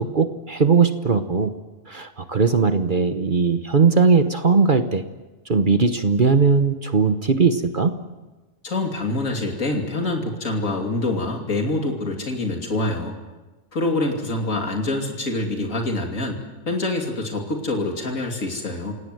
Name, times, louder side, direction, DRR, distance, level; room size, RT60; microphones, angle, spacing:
voice 1, 0.0-1.5 1.9-5.0 5.5-7.9, right 4 dB, 40° right, 8 dB, 1.1 m, -19 dB
voice 2, 8.6-13.2 13.7-16.4 16.7-18.9, left 2 dB, 85° left, 1 dB, 3.2 m, -25 dB
29.0 x 17.5 x 7.8 m, 1.2 s
omnidirectional pair, 1.4 m